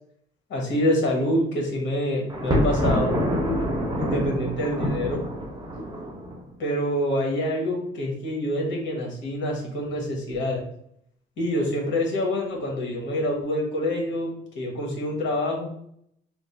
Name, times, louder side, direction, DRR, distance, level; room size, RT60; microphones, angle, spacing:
voice 1, 0.5-3.1 4.0-5.2 6.6-10.6 11.4-15.7, left 1 dB, 65° left, 0 dB, 1.2 m, -26 dB
Thunder, 2.3-6.4, equal, 20° right, 0.9 m, -26 dB
3.2 x 2.0 x 4.2 m, 0.70 s
cardioid pair, 90°, 20 cm